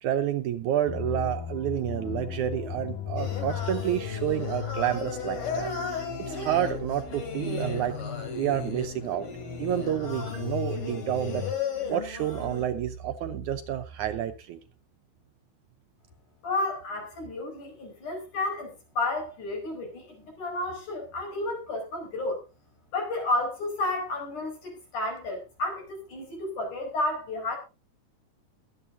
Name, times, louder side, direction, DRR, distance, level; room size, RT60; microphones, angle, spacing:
voice 1, 0.0-8.0 8.4-9.3 9.6-11.5 11.9-14.6, right 11 dB, 70° right, 8 dB, 2.0 m, -29 dB
sound 1, 0.9-11.5, left 8 dB, 75° left, 4.1 m, -36 dB
Singing, 3.2-12.7, left 4 dB, 40° left, 3.4 m, -36 dB
voice 2, 16.4-22.4 22.9-27.6, left 2 dB, 60° left, 3 dB, 6.9 m, -31 dB
22.5 x 8.9 x 2.7 m, 0.29 s
omnidirectional pair, 4.0 m